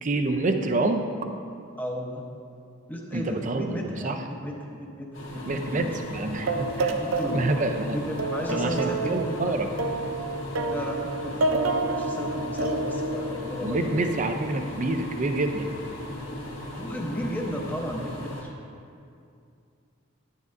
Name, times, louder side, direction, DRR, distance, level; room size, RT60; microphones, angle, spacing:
voice 1, 0.0-1.0 3.1-4.2 5.5-7.0 7.3-8.0 8.5-9.7 13.6-15.7, right 2 dB, 35° right, 6 dB, 0.5 m, -27 dB
voice 2, 1.8-2.2 2.9-6.0 7.0-7.5 7.9-9.7 10.7-14.0 16.7-18.5, equal, 10° left, 0 dB, 0.8 m, -34 dB
sound 1, 5.1-18.4, left 1 dB, 65° left, 1.5 m, -37 dB
sound 2, 6.5-7.8 8.2-14.2, right 2 dB, 80° right, 0.6 m, -29 dB
10.5 x 9.6 x 2.6 m, 2.4 s
head